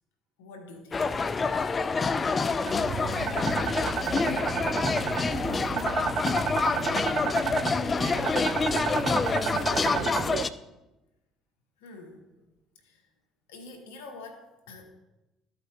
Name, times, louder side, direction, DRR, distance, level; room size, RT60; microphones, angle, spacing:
voice 1, 0.4-1.2 7.8-8.1 11.8-12.3 12.7-13.1 13.5-14.8, left 3 dB, 90° left, 5 dB, 1.2 m, -46 dB
sound 1, 0.9-10.5, left 4 dB, 30° left, 0.4 m, -27 dB
voice 2, 2.2-5.4 6.1-7.4 7.9-8.6 8.9-10.3, right 1 dB, 25° right, -4 dB, 3.1 m, -46 dB
sound 2, 2.6-10.4, right 10 dB, 65° right, 0.3 m, -32 dB
13.0 x 5.1 x 2.9 m, 0.99 s
hypercardioid pair, 65°, 0 cm